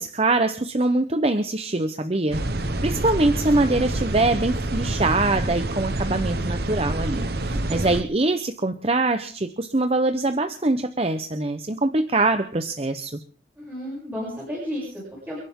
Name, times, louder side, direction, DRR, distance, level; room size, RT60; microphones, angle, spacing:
voice 1, 0.0-13.2, right 2 dB, 30° right, 8 dB, 0.9 m, -23 dB
sound 1, 2.3-8.0, right 1 dB, 55° right, 1.2 m, -27 dB
voice 2, 7.5-7.9 13.6-15.4, equal, 10° right, -7 dB, 7.3 m, -33 dB
30.0 x 11.5 x 3.7 m, 0.43 s
head